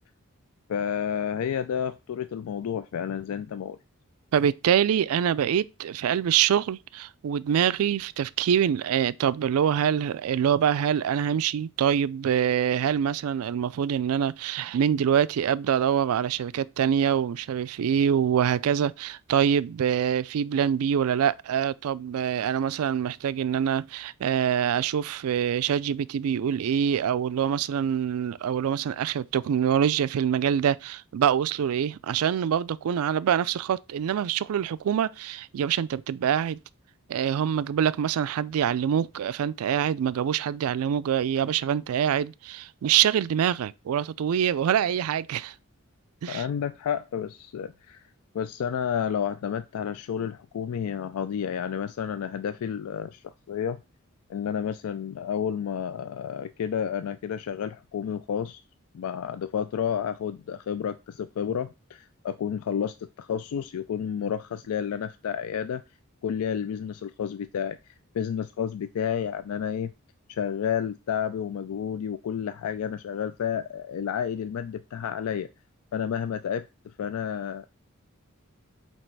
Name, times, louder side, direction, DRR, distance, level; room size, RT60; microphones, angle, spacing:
voice 1, 0.7-3.8 46.3-48.1 48.3-53.8 54.3-58.6 58.9-65.8 66.2-67.8 68.1-69.9 70.3-75.5 75.9-77.6, left 8 dB, 80° left, 0.3 m, -30 dB
voice 2, 4.3-36.6 37.1-45.5 46.2-46.5, right 8 dB, 75° right, 0.3 m, -25 dB
7.5 x 2.9 x 4.5 m
head